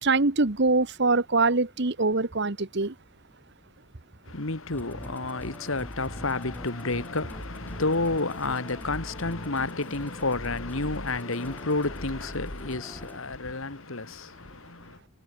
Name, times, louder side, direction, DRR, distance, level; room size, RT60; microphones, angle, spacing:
voice 1, 0.0-2.9, right 3 dB, 50° right, 1.3 m, -23 dB
voice 2, 4.3-15.0, left 3 dB, 65° left, 2.0 m, -30 dB
Musical instrument, 4.7-13.2, equal, 10° left, 4.0 m, -42 dB
head